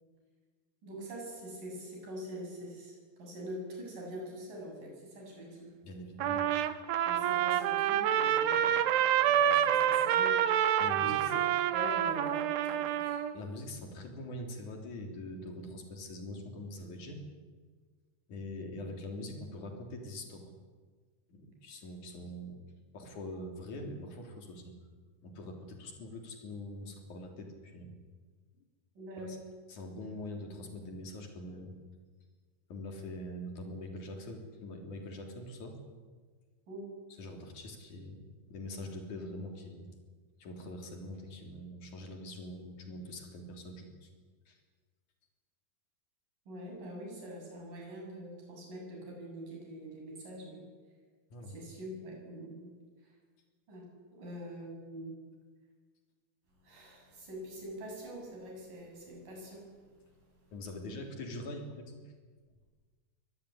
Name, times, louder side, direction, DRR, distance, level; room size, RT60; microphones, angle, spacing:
voice 1, 0.8-5.7 7.1-10.4 11.0-11.4 11.7-13.2 18.8-19.0 29.0-29.4 36.7-36.9 46.5-50.7 51.4-52.8 53.7-55.2 56.6-59.8, right 1 dB, 50° right, 0 dB, 9.3 m, -44 dB
voice 2, 5.8-6.5 10.8-11.3 13.3-17.2 18.3-20.5 21.3-22.6 22.9-24.7 25.2-28.0 29.2-29.4 29.7-31.7 32.7-35.8 37.2-39.9 40.4-44.1 44.5-44.6 51.3-51.6 60.5-62.0, left 1 dB, 50° left, 3 dB, 4.5 m, -43 dB
Trumpet, 6.2-13.3, right 10 dB, 80° right, 3.1 m, -28 dB
24.0 x 18.5 x 9.9 m, 1.5 s
omnidirectional pair, 4.8 m